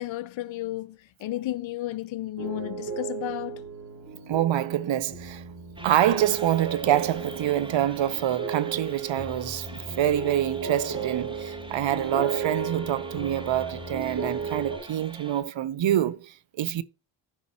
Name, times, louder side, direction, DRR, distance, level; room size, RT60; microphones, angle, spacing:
voice 1, 0.0-3.6, left 15 dB, 70° left, 0.7 m, -33 dB
sound 1, 2.4-14.8, right 5 dB, 40° right, 4.2 m, -34 dB
voice 2, 4.3-5.4 5.8-16.8, right 12 dB, 65° right, 0.8 m, -26 dB
sound 2, 5.8-15.4, right 1 dB, 10° right, 1.9 m, -45 dB
14.0 x 5.4 x 2.8 m
cardioid pair, 80°, 48 cm